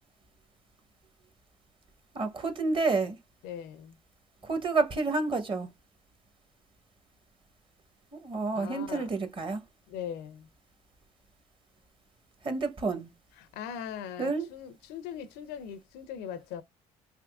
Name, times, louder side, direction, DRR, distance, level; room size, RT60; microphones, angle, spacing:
voice 1, 2.1-3.2 4.4-5.7 8.1-9.6 12.4-13.1 14.2-14.5, right 3 dB, 30° right, 0.9 m, -29 dB
voice 2, 3.4-4.0 8.5-9.1 9.9-10.5 13.4-16.6, left 8 dB, 75° left, 0.5 m, -40 dB
3.5 x 2.9 x 2.3 m
supercardioid pair, 90°, 17 cm